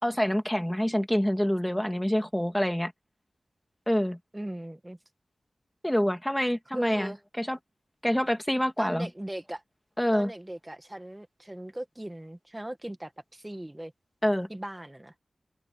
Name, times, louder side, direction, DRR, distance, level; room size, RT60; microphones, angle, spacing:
voice 1, 0.0-2.9 3.9-4.2 5.8-7.6 8.0-9.1 10.0-10.3 14.2-14.5, equal, 5° left, 2.3 m, -26 dB
voice 2, 4.3-5.0 6.7-7.2 8.8-9.6 10.1-13.9 14.5-15.1, right 1 dB, 15° right, 1.5 m, -38 dB
wide cardioid pair, 80°, 0 cm